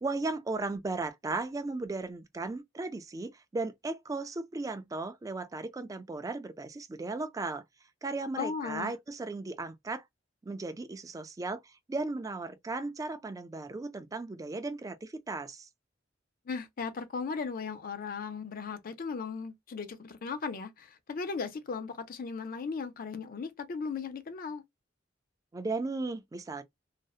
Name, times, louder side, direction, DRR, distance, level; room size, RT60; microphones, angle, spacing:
voice 1, 0.0-7.6 8.0-10.0 10.4-15.7 25.5-26.6, right 3 dB, 20° right, 0.3 m, -36 dB
voice 2, 8.4-8.9 16.5-24.6, left 5 dB, 50° left, 0.5 m, -37 dB
2.7 x 2.0 x 2.3 m
head